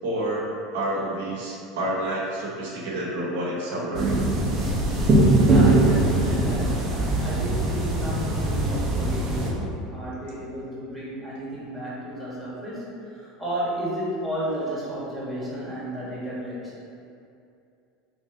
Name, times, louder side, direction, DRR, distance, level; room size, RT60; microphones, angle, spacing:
voice 1, 0.0-4.2, right 1 dB, 80° right, -6 dB, 0.9 m, -29 dB
sound 1, 3.9-9.5, right 2 dB, 30° right, 0.8 m, -21 dB
voice 2, 5.4-16.7, equal, 5° left, -8 dB, 1.4 m, -33 dB
3.2 x 2.6 x 3.8 m, 2.5 s
hypercardioid pair, 95°, 0 cm